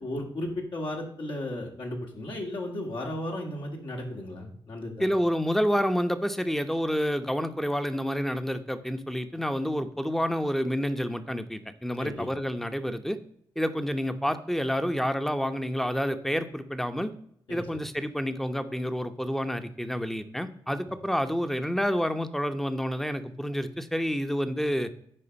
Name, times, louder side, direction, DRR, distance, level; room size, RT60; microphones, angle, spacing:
voice 1, 0.0-5.1 12.0-12.3 17.5-17.8, left 1 dB, 65° left, 0 dB, 2.4 m, -35 dB
voice 2, 5.0-13.2 13.6-17.1 17.5-24.9, equal, 5° left, 9 dB, 0.9 m, -29 dB
9.8 x 4.9 x 5.4 m, 0.69 s
cardioid pair, 50°, 9 cm